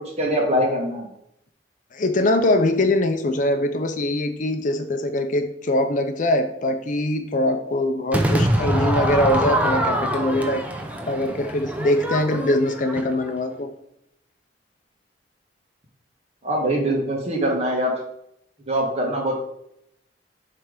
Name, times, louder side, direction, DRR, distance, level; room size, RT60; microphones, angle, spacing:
voice 1, 0.2-1.1 16.4-18.0 18.7-19.4, equal, 35° right, -1 dB, 1.7 m, -23 dB
voice 2, 1.9-10.6 11.1-13.7, left 1 dB, 45° left, 6 dB, 0.6 m, -22 dB
Crowd / Fireworks, 8.1-13.4, equal, 10° right, 0.6 m, -24 dB
7.6 x 3.4 x 5.1 m, 0.78 s
head